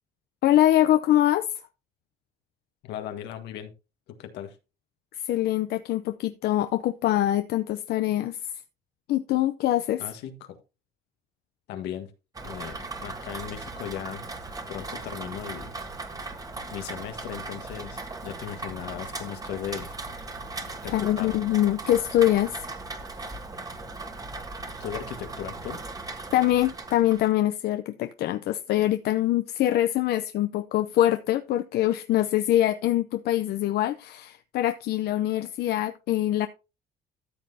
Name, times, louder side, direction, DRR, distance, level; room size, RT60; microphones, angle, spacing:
voice 1, 0.4-1.5 5.1-8.5 9.1-10.0 20.9-22.7 26.3-36.5, left 13 dB, 70° left, 0.6 m, -24 dB
voice 2, 2.8-3.7 4.1-4.5 10.0-10.6 11.7-12.1 12.4-14.3 14.7-15.8 16.7-20.0 20.8-21.4 24.8-25.8, left 10 dB, 85° left, 1.6 m, -37 dB
Rain, 12.3-27.3, right 3 dB, 20° right, 1.5 m, -38 dB
13.5 x 7.4 x 2.8 m
cardioid pair, 110°, 17 cm